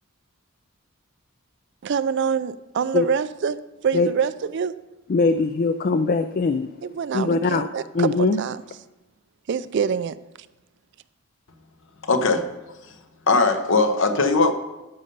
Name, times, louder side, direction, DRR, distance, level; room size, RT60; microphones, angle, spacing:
voice 1, 1.8-4.7 6.8-8.6 9.5-10.2, right 7 dB, 50° right, 15 dB, 0.3 m, -25 dB
voice 2, 5.1-6.7 7.1-7.7 7.9-8.4, left 3 dB, 40° left, 10 dB, 0.3 m, -21 dB
voice 3, 12.0-12.5 13.3-14.5, left 3 dB, 55° left, 7 dB, 0.9 m, -19 dB
13.0 x 5.5 x 5.4 m, 1.0 s
head